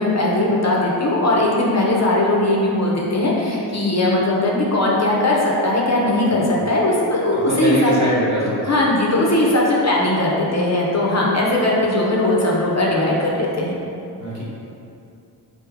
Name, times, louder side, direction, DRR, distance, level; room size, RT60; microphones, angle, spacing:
voice 1, 0.0-7.9 8.6-13.7, left 1 dB, 40° left, -4 dB, 0.6 m, -19 dB
voice 2, 7.3-8.6 14.2-14.5, right 1 dB, 45° right, -7 dB, 1.2 m, -22 dB
3.3 x 2.7 x 3.4 m, 2.7 s
cardioid pair, 50°, 42 cm